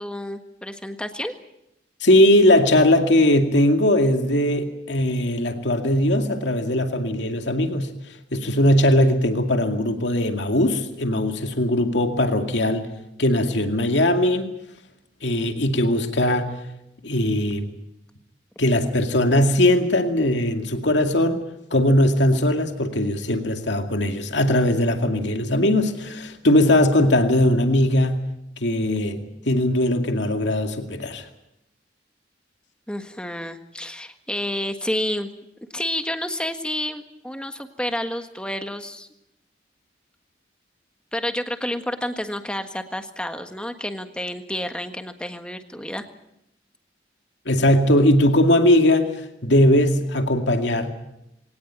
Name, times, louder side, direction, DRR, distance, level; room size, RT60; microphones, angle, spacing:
voice 1, 0.0-1.3 32.9-35.3 35.7-39.1 41.1-46.0, left 1 dB, 5° left, 6 dB, 1.5 m, -30 dB
voice 2, 2.0-7.9 8.3-12.8 13.2-14.5 15.2-16.6 17.0-17.7 18.6-21.4 21.7-28.2 28.6-31.3 47.5-50.9, left 1 dB, 75° left, 5 dB, 2.3 m, -19 dB
23.0 x 18.5 x 9.0 m, 0.85 s
head